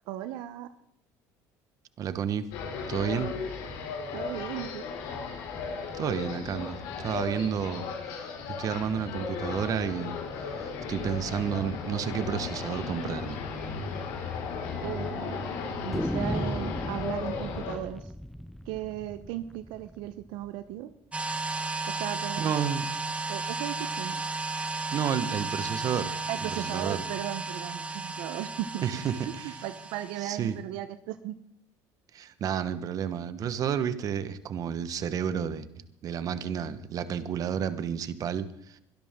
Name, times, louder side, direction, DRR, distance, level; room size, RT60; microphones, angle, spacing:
voice 1, 0.0-0.7 4.1-4.8 14.8-15.5 15.8-18.1 18.6-20.9 21.9-22.5 23.3-24.2 26.3-29.0 29.4-31.4, right 13 dB, 75° right, 11 dB, 0.9 m, -36 dB
voice 2, 2.0-2.5 2.9-3.3 5.9-13.4 22.4-22.9 24.9-26.1 26.4-27.0 28.8-29.5 30.2-30.6 32.1-35.7 36.0-38.8, right 8 dB, 50° right, 12 dB, 1.3 m, -31 dB
sound 1, 2.5-17.8, left 5 dB, 75° left, 5.1 m, -35 dB
sound 2, 13.1-13.3 13.6-13.7 14.0-14.1 14.7-15.2 15.9-20.7, equal, ahead, 0.6 m, -37 dB
sound 3, 21.1-30.5, right 4 dB, 15° right, 1.8 m, -34 dB
22.5 x 12.5 x 3.8 m, 0.76 s
supercardioid pair, 100°, 8 cm